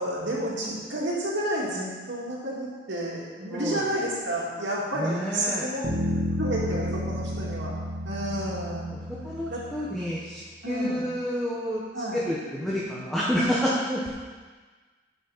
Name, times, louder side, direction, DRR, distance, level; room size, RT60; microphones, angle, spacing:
voice 1, 0.0-5.8 6.4-7.7 8.0-8.9 9.5-9.6 10.6-11.1 11.9-12.2, right 1 dB, 80° right, -5 dB, 2.4 m, -30 dB
voice 2, 3.5-3.8 5.0-5.7 6.7-7.0 7.4-7.6 8.9-11.8 12.1-14.1, equal, ahead, -7 dB, 1.2 m, -29 dB
sound 1, 5.8-10.2, equal, 45° right, 2.7 m, -31 dB
10.5 x 6.3 x 4.2 m, 1.4 s
head